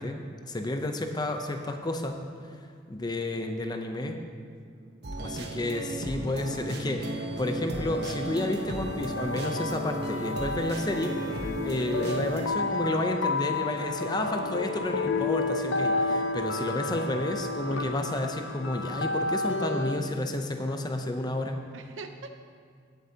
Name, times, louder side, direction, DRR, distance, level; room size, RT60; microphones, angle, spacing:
voice 1, 0.0-2.2 2.9-4.2 5.2-21.6, left 1 dB, 20° left, 5 dB, 0.6 m, -31 dB
voice 2, 4.7-5.3 13.7-14.6 15.0-15.4 21.7-22.4, right 4 dB, 80° right, 7 dB, 0.7 m, -48 dB
sound 1, 5.0-12.5, right 1 dB, 55° right, 1.1 m, -35 dB
sound 2, 7.7-20.0, left 3 dB, 85° left, 0.6 m, -31 dB
16.0 x 7.8 x 2.8 m, 2.1 s
head